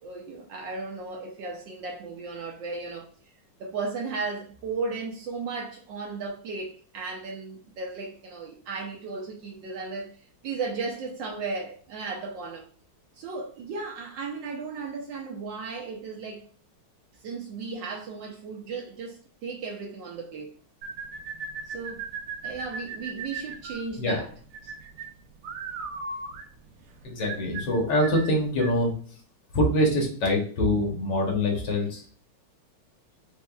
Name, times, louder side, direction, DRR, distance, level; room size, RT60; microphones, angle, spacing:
voice 1, 0.0-3.1 3.6-10.1 10.4-12.7 13.2-16.5 17.2-20.5 21.7-22.0 22.4-24.3, right 4 dB, 70° right, 1.2 m, -35 dB
sound 1, 20.8-28.8, right 4 dB, 90° right, 1.6 m, -38 dB
voice 2, 27.0-29.2 29.5-32.1, left 1 dB, 60° left, 1.5 m, -25 dB
4.3 x 3.5 x 2.3 m
omnidirectional pair, 2.4 m